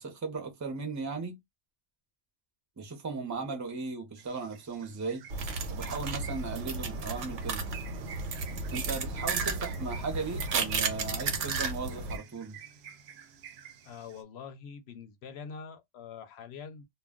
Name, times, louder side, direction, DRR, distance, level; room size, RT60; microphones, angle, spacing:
voice 1, 0.0-1.4 2.8-5.3 5.7-7.7 8.7-12.6, right 4 dB, 20° right, 0.5 m, -37 dB
sound 1, 4.2-14.2, right 8 dB, 65° right, 0.8 m, -50 dB
sound 2, 5.3-12.2, right 4 dB, 90° right, 1.0 m, -33 dB
voice 2, 13.8-16.9, left 6 dB, 70° left, 0.8 m, -44 dB
2.2 x 2.2 x 3.5 m
omnidirectional pair, 1.2 m